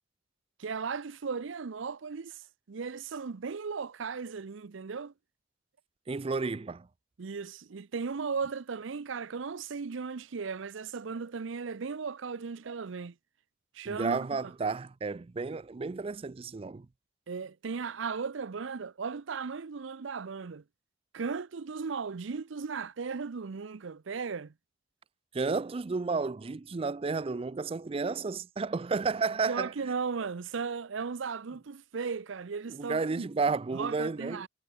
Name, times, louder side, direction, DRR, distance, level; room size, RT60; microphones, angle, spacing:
voice 1, 0.6-5.1 7.2-13.1 13.7-14.5 17.3-20.6 21.1-24.5 29.5-33.3 33.7-34.5, right 5 dB, 75° right, 0.6 m, -36 dB
voice 2, 6.1-6.9 13.8-16.9 25.3-29.7 32.7-34.5, right 4 dB, 30° right, 0.4 m, -32 dB
head